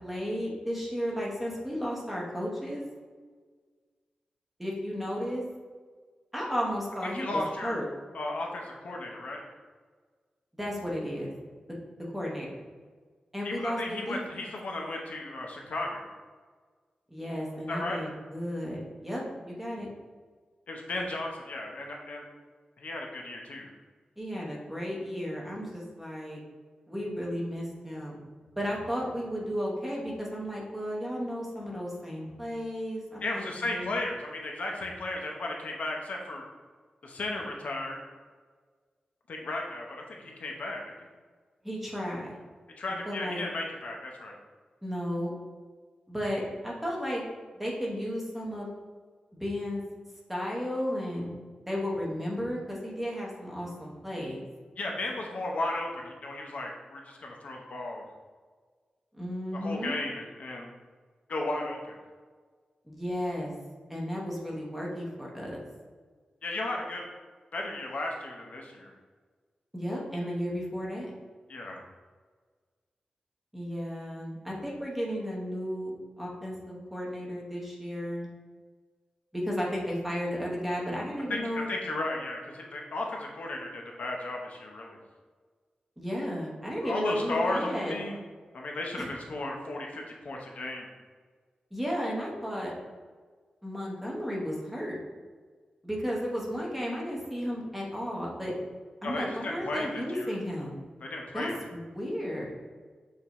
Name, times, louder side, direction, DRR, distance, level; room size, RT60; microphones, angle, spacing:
voice 1, 0.0-2.8 4.6-5.4 6.3-7.9 10.5-11.3 12.1-12.5 13.3-14.2 17.1-19.9 24.2-26.4 26.9-28.2 28.6-33.9 41.6-42.4 43.1-43.4 44.8-45.3 46.1-47.2 47.5-48.7 49.3-49.8 50.3-51.3 51.7-54.4 59.1-59.9 62.9-63.5 63.9-65.6 69.7-71.1 73.5-78.3 79.3-81.7 86.0-87.9 89.0-89.1 91.7-92.7 93.6-95.0 95.8-98.5 99.0-100.8 101.3-102.5, equal, 5° right, -3 dB, 0.9 m, -34 dB
voice 2, 7.1-7.7 8.1-9.4 13.4-16.1 17.7-18.0 20.7-22.2 22.8-23.7 33.2-36.4 37.0-38.0 39.3-41.1 42.8-44.4 54.8-58.0 59.5-60.7 61.3-61.9 66.4-67.0 67.5-68.9 71.5-71.8 81.3-81.4 81.7-85.0 86.8-88.2 88.5-90.9 99.0-100.3 101.0-101.6, left 2 dB, 65° left, 0 dB, 0.8 m, -35 dB
6.5 x 2.8 x 2.9 m, 1.5 s
wide cardioid pair, 170°, 3 cm